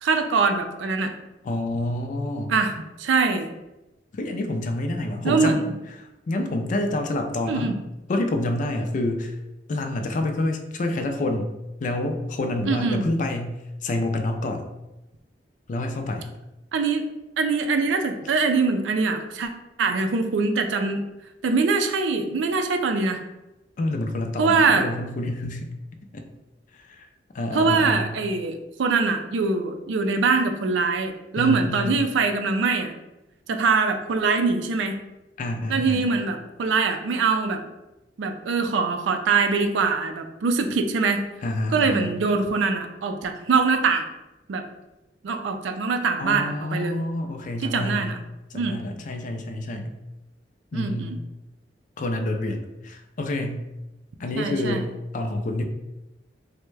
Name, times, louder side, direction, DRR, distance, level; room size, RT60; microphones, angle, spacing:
voice 1, 0.0-1.1 2.5-3.5 5.2-5.6 7.5-7.7 12.7-13.0 16.7-17.1 17.4-19.5 19.8-21.1 21.4-23.2 24.4-24.9 27.5-32.9 33.5-35.0 35.7-37.6 38.2-41.2 41.7-44.1 44.5-44.6 45.2-47.0 47.6-48.2 48.5-48.8 50.7-51.2 54.4-54.8, right 4 dB, 90° right, 6 dB, 0.4 m, -23 dB
voice 2, 1.4-2.5 4.1-5.7 6.0-7.7 8.1-9.4 9.7-11.5 11.8-14.7 15.7-16.3 23.8-25.7 26.1-26.2 26.9-27.1 27.3-28.1 31.4-32.0 35.4-36.1 41.4-42.1 46.2-48.1 48.5-49.9 50.7-51.1 52.0-53.6 54.2-55.6, left 1 dB, 45° left, 5 dB, 0.4 m, -28 dB
3.4 x 2.1 x 3.2 m, 0.97 s
head